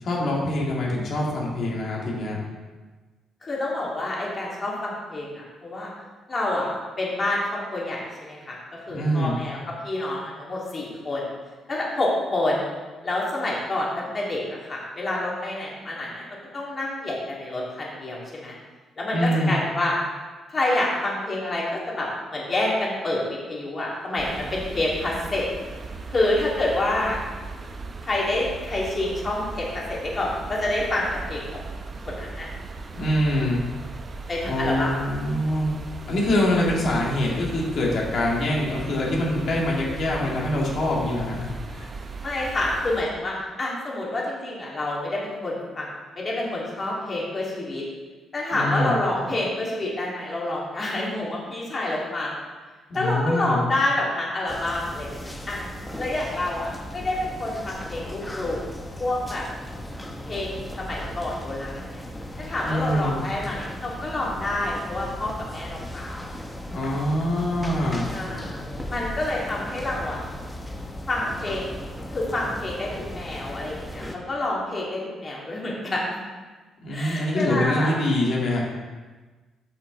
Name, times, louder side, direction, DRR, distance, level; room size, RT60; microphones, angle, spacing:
voice 1, 0.0-2.4 8.9-9.4 19.1-19.5 32.9-33.6 34.4-35.7 36.1-41.9 48.5-49.0 52.9-53.6 62.7-63.2 66.7-68.1 76.8-78.6, left 1 dB, 60° left, -3 dB, 2.5 m, -24 dB
voice 2, 3.4-5.9 6.3-6.7 7.0-8.6 8.9-9.6 9.8-11.3 11.7-12.7 13.0-18.6 19.0-19.9 20.5-25.4 26.1-27.2 28.0-31.6 32.1-32.5 34.3-34.9 42.2-45.9 46.1-47.8 48.3-52.3 52.9-55.1 55.5-55.6 56.0-58.6 59.0-59.5 60.3-62.0 62.4-66.1 68.1-68.5 68.9-70.2 71.1-71.8 72.1-76.0 76.9-77.9, left 2 dB, 35° left, -4 dB, 2.9 m, -28 dB
sound 1, 24.2-43.0, right 3 dB, 40° right, 0.7 m, -38 dB
sound 2, 54.5-74.2, equal, 10° left, 1.1 m, -36 dB
8.6 x 6.2 x 4.1 m, 1.3 s
cardioid pair, 90°, 0 cm